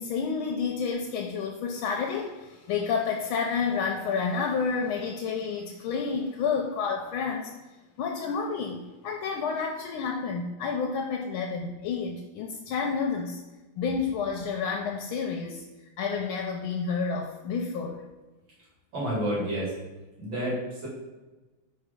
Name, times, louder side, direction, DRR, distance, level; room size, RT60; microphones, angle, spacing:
voice 1, 0.0-7.5 8.0-13.4 13.8-15.6 16.0-18.0, left 5 dB, 85° left, 1 dB, 1.4 m, -30 dB
voice 2, 18.9-19.7 20.2-20.9, right 1 dB, 70° right, -6 dB, 2.8 m, -29 dB
4.5 x 4.5 x 5.0 m, 1.2 s
omnidirectional pair, 2.2 m